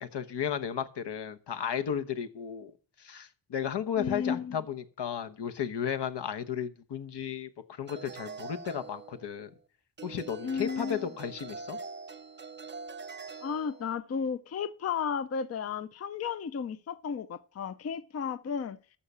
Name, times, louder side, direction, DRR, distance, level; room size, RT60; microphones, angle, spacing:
voice 1, 0.0-2.7 3.0-9.5 10.0-11.8, left 8 dB, 70° left, 1.1 m, -34 dB
voice 2, 4.0-4.6 10.4-11.1 13.4-18.8, left 6 dB, 35° left, 0.5 m, -33 dB
sound 1, 7.9-9.6 10.0-13.9, right 4 dB, 25° right, 0.5 m, -44 dB
14.0 x 5.6 x 6.2 m
wide cardioid pair, 105°, 43 cm